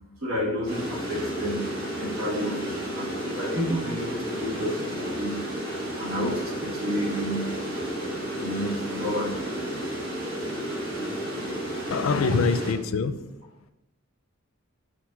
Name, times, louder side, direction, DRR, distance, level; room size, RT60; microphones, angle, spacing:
voice 1, 0.2-1.6 1.9-5.4 5.9-7.6 8.4-9.4, equal, 75° right, 2.0 m, -30 dB
sound 1, 0.7-12.7, right 1 dB, 45° right, 2.1 m, -32 dB
voice 2, 11.9-13.4, left 4 dB, 75° left, 0.5 m, -25 dB
4.6 x 4.6 x 5.8 m
head